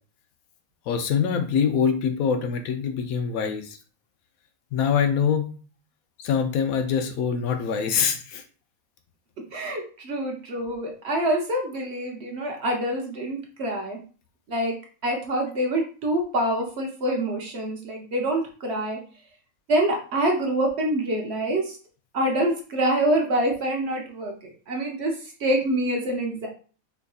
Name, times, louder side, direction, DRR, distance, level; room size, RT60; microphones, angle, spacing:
voice 1, 0.9-3.8 4.7-5.5 6.2-8.4, left 7 dB, 80° left, 7 dB, 1.0 m, -24 dB
voice 2, 9.5-14.0 14.5-14.8 15.0-19.0 19.7-21.8 22.1-24.4 24.7-25.1 25.4-26.5, right 1 dB, 55° right, 1 dB, 0.9 m, -26 dB
4.4 x 2.6 x 2.3 m, 0.39 s
omnidirectional pair, 1.5 m